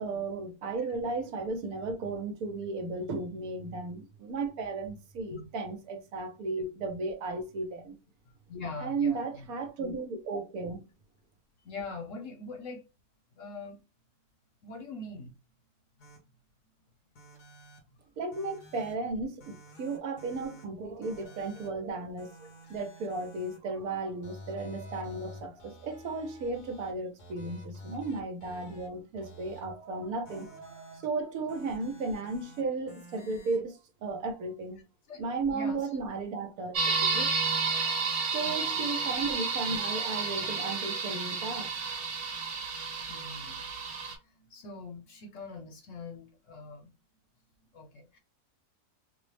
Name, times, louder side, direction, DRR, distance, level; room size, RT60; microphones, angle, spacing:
voice 1, 0.0-7.9 8.8-10.8 18.2-34.8 35.2-36.8 37.1-37.3 37.7-41.7, right 3 dB, 75° right, 1.1 m, -35 dB
voice 2, 8.5-9.5 11.6-12.8 13.3-13.8 14.6-15.3 35.1-35.2 35.5-35.9 38.4-38.7 43.1-43.6 44.2-46.9 47.7-48.2, left 3 dB, 60° left, 1.1 m, -42 dB
sound 1, 16.0-16.2 17.2-17.8 18.3-18.9 19.4-20.6 21.0-21.7 22.2-23.6 24.2-26.9 27.2-28.9 29.1-29.7 30.3-31.1 31.5-32.6 32.9-33.6, equal, 85° left, 1.8 m, -50 dB
sound 2, 36.7-44.1, right 4 dB, 55° right, 1.1 m, -31 dB
4.0 x 2.0 x 3.1 m
omnidirectional pair, 1.6 m